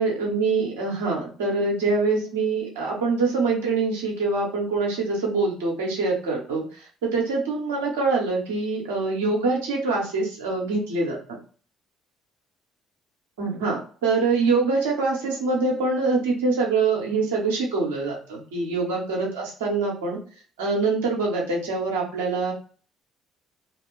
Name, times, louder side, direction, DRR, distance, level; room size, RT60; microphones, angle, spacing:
voice 1, 0.0-11.2 13.4-20.2 20.6-22.5, right 3 dB, 75° right, -1 dB, 1.0 m, -24 dB
2.7 x 2.3 x 3.8 m, 0.42 s
figure-of-eight pair, 50°, 0 cm